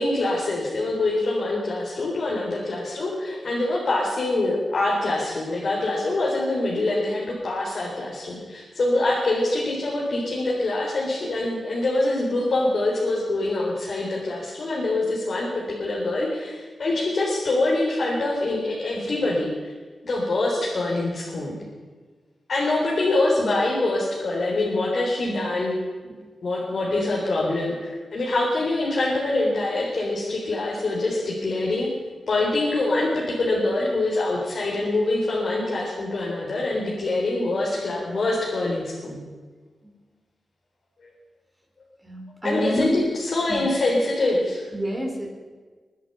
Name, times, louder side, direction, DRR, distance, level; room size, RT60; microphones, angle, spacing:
voice 1, 0.0-19.7 20.0-21.6 22.5-26.1 26.4-31.9 32.3-39.2 41.0-41.1 42.4-44.7, left 2 dB, 60° left, -4 dB, 4.1 m, -25 dB
voice 2, 42.0-43.0 43.5-43.6 44.7-45.3, equal, 15° right, 1 dB, 4.6 m, -27 dB
23.0 x 10.0 x 5.7 m, 1.4 s
cardioid pair, 65°, 0 cm